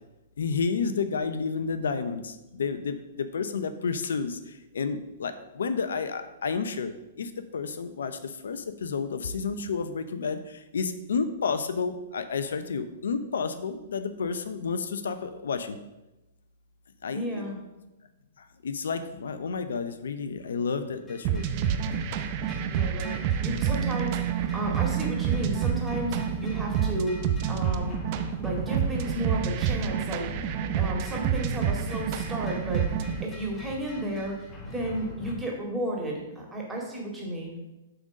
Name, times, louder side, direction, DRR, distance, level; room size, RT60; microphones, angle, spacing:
voice 1, 0.4-15.8 17.0-17.5 18.4-21.5, left 5 dB, 85° left, 10 dB, 0.6 m, -31 dB
voice 2, 17.1-17.5 22.7-28.0 28.4-34.4 34.6-37.6, right 1 dB, 10° right, -1 dB, 2.2 m, -33 dB
sound 1, 21.1-35.3, left 2 dB, 15° left, 1.9 m, -41 dB
sound 2, 21.2-33.3, right 8 dB, 45° right, 0.6 m, -29 dB
Mallet percussion, 23.7-31.2, right 13 dB, 80° right, 0.3 m, -36 dB
7.8 x 3.9 x 6.2 m, 0.99 s
hypercardioid pair, 135°, 0 cm